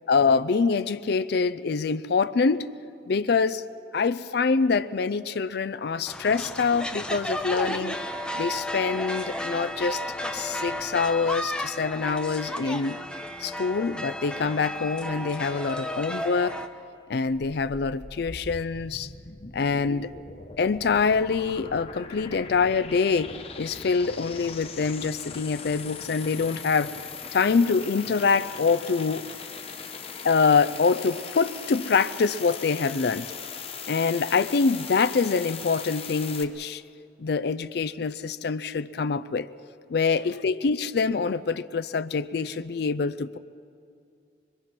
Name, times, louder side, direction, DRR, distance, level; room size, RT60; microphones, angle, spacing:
voice 1, 0.1-2.7 3.1-3.6 3.9-8.0 8.3-10.0 10.3-13.0 13.4-16.6 17.1-19.1 19.5-20.1 20.6-26.9 27.3-29.3 30.2-33.3 33.9-36.8 37.2-39.5 39.9-43.4, left 5 dB, 65° left, 0.5 m, -25 dB
sound 1, 6.1-16.7, equal, 5° left, 0.9 m, -33 dB
sound 2, 17.3-36.4, left 5 dB, 35° left, 1.0 m, -40 dB
24.0 x 22.5 x 6.0 m
head